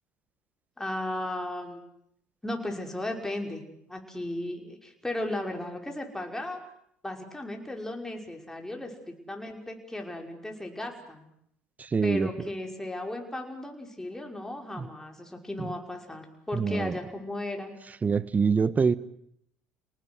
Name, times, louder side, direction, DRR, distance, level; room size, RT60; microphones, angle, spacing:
voice 1, 0.8-1.8 2.4-3.6 3.9-6.6 7.0-11.3 12.0-17.7, left 1 dB, 10° left, 2 dB, 5.7 m, -35 dB
voice 2, 11.8-12.3 14.8-14.9 15.6-15.7 16.5-16.9 18.0-18.9, right 5 dB, 30° right, 16 dB, 1.4 m, -25 dB
30.0 x 19.0 x 8.2 m, 0.72 s
hypercardioid pair, 70°, 5 cm